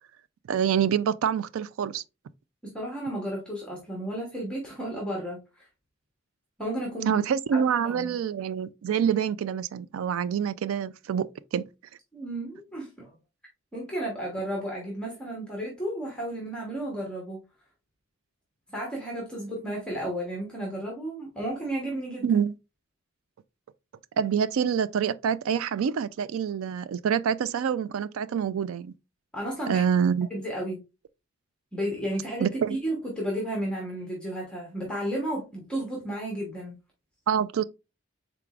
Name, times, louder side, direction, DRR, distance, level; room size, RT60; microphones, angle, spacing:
voice 1, 0.5-2.0 7.1-11.7 22.2-22.5 24.2-28.9 29.7-30.3 32.4-32.8 37.3-37.6, right 8 dB, 85° right, 0.3 m, -26 dB
voice 2, 2.6-5.7 6.6-7.2 7.5-8.1 12.1-13.1 13.7-17.4 18.7-22.4 29.3-29.8 30.3-30.8 31.7-36.8, right 1 dB, 5° left, 1.0 m, -33 dB
4.6 x 3.9 x 2.4 m
head